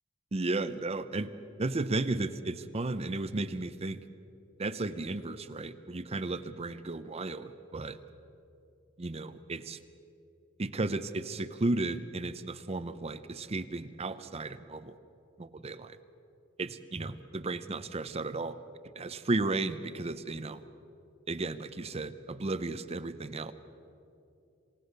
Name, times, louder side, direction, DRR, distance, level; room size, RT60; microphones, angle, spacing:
voice 1, 0.3-1.3 1.6-4.0 4.6-8.0 9.0-9.8 10.6-14.9 15.4-16.0 16.6-18.6 19.0-20.6 21.3-23.5, right 2 dB, 30° right, 12 dB, 0.6 m, -34 dB
27.0 x 17.5 x 6.7 m, 2.7 s
head